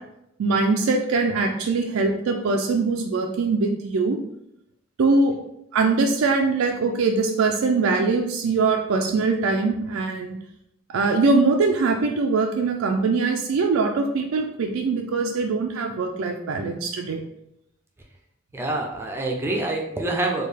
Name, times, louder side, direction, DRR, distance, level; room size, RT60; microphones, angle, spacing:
voice 1, 0.4-4.2 5.0-5.3 5.7-10.4 10.9-17.2, right 3 dB, 85° right, 2 dB, 0.4 m, -22 dB
voice 2, 18.5-20.5, right 2 dB, 10° right, 1 dB, 0.4 m, -26 dB
3.7 x 2.3 x 3.3 m, 0.79 s
head